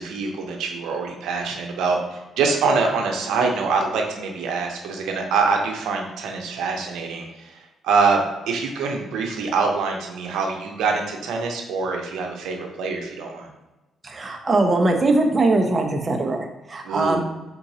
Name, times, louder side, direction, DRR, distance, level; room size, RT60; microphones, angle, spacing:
voice 1, 0.0-7.6 7.8-13.5 16.8-17.2, right 4 dB, 85° right, 2 dB, 0.7 m, -24 dB
voice 2, 14.0-17.2, right 2 dB, 30° right, 3 dB, 0.6 m, -21 dB
4.5 x 3.7 x 2.8 m, 1.1 s
cardioid pair, 90°, 0 cm